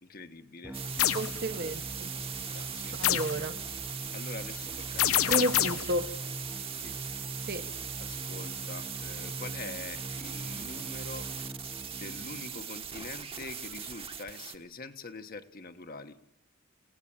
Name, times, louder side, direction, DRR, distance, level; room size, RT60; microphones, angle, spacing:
voice 1, 0.0-0.8 2.4-3.0 4.1-5.2 6.7-7.0 8.0-11.3 12.0-16.2, left 3 dB, 40° left, 1.3 m, -44 dB
sound 1, 0.6-12.6, equal, 5° right, 0.9 m, -43 dB
sound 2, 0.7-14.6, right 8 dB, 25° right, 1.3 m, -40 dB
sound 3, 1.0-1.3 3.0-3.4 5.0-5.9, left 11 dB, 85° left, 0.9 m, -26 dB
voice 2, 1.1-2.1 3.0-3.6 5.3-6.1 7.5-7.6, right 1 dB, 45° right, 1.2 m, -31 dB
28.5 x 17.0 x 8.8 m
head